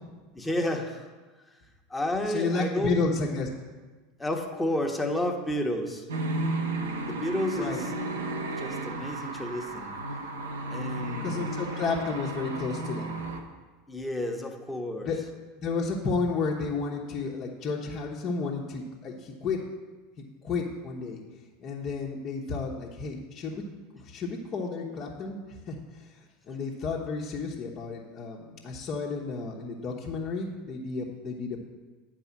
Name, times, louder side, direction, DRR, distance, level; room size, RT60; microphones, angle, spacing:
voice 1, 0.3-1.1 1.9-2.9 4.2-6.0 7.1-7.9 8.6-10.0 10.7-11.5 13.9-15.1, left 1 dB, 10° left, 2 dB, 1.3 m, -31 dB
voice 2, 2.3-3.5 7.6-7.8 11.2-13.3 15.0-15.2 15.6-19.6 20.4-21.2 21.6-23.6 23.9-31.6, left 4 dB, 40° left, -3 dB, 1.3 m, -32 dB
sound 1, 6.1-13.4, right 2 dB, 80° right, 1.0 m, -33 dB
9.3 x 4.8 x 7.3 m, 1.3 s
hypercardioid pair, 85°, 0 cm